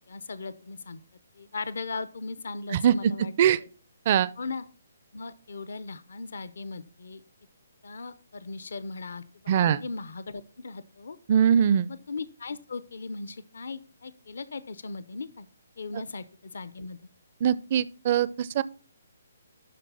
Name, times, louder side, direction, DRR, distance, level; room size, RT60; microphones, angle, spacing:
voice 1, 0.1-1.0 1.4-3.3 3.6-3.7 4.4-4.6 5.1-7.2 7.8-11.2 11.9-15.5 15.8-17.0, left 4 dB, 75° left, 0.6 m, -38 dB
voice 2, 9.5-9.8 11.3-11.9 17.4-18.6, right 9 dB, 40° right, 0.4 m, -22 dB
12.0 x 4.0 x 5.5 m
hypercardioid pair, 155°, 0 cm